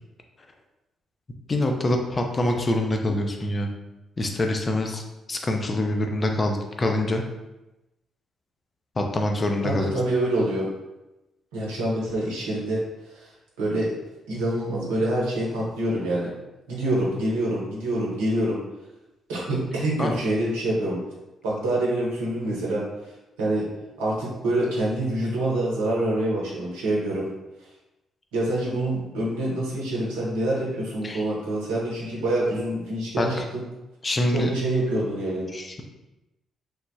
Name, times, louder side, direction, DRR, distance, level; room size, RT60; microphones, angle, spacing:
voice 1, 1.5-3.7 4.2-5.0 5.3-7.2 9.0-9.9 20.0-20.2 31.0-31.2 33.2-33.4 34.0-34.5 35.5-35.8, left 1 dB, 35° left, 3 dB, 0.5 m, -25 dB
voice 2, 9.6-10.7 11.5-12.8 13.6-13.9 14.3-16.3 16.7-18.6 19.3-21.0 21.4-22.8 23.4-23.7 24.0-27.3 28.3-33.4 34.3-35.5, right 1 dB, 80° right, -5 dB, 0.8 m, -26 dB
3.2 x 2.1 x 2.7 m, 1.0 s
hypercardioid pair, 40°, 0 cm